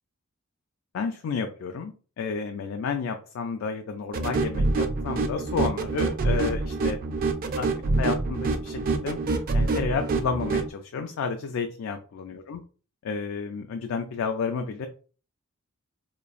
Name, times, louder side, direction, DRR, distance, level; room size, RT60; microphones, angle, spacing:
voice 1, 0.9-7.0 7.5-7.7 8.0-9.2 9.5-12.6 13.0-14.9, left 5 dB, 70° left, 5 dB, 0.3 m, -31 dB
sound 1, 4.1-10.7, right 3 dB, 40° right, 0.3 m, -26 dB
2.9 x 2.3 x 2.4 m, 0.37 s
head